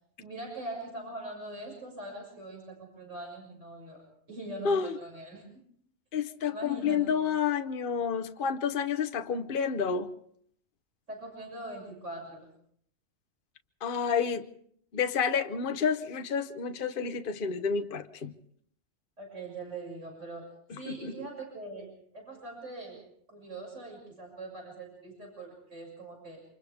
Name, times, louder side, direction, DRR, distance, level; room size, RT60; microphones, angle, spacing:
voice 1, 0.2-4.0 4.3-5.4 6.4-7.3 11.1-12.5 19.2-20.4 20.7-23.0 23.3-26.4, right 2 dB, 60° right, -1 dB, 6.9 m, -42 dB
voice 2, 6.1-10.1 13.8-14.5 14.9-18.3 20.7-21.2, left 6 dB, 45° left, 8 dB, 1.0 m, -30 dB
29.0 x 26.0 x 3.5 m, 0.65 s
omnidirectional pair, 1.4 m